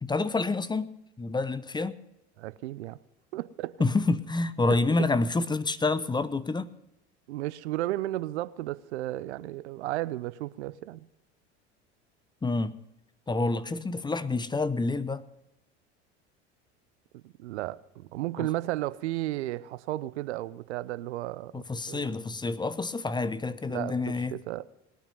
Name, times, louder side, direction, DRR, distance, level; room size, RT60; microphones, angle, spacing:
voice 1, 0.0-2.0 3.8-6.7 12.4-12.8 13.3-15.2 18.4-18.5 21.5-24.4, left 3 dB, 15° left, 0.7 m, -28 dB
voice 2, 2.4-3.0 3.3-3.7 4.7-4.8 7.3-11.1 17.1-22.1 23.7-24.6, right 16 dB, 75° right, 0.7 m, -34 dB
20.0 x 9.2 x 5.4 m
hypercardioid pair, 80°, 34 cm